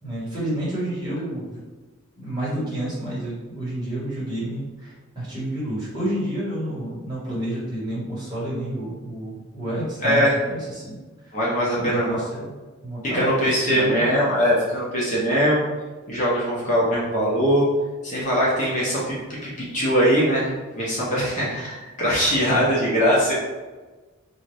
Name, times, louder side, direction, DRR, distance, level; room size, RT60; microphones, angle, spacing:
voice 1, 0.0-1.6 2.2-11.0 11.2-11.4 11.8-12.6 12.8-14.1 22.5-22.6, right 1 dB, 20° right, -8 dB, 1.4 m, -29 dB
voice 2, 10.0-10.3 11.3-12.2 13.1-15.6 16.1-17.6 18.0-19.1 19.4-23.3, equal, 35° left, -7 dB, 0.8 m, -21 dB
3.9 x 2.6 x 3.3 m, 1.3 s
head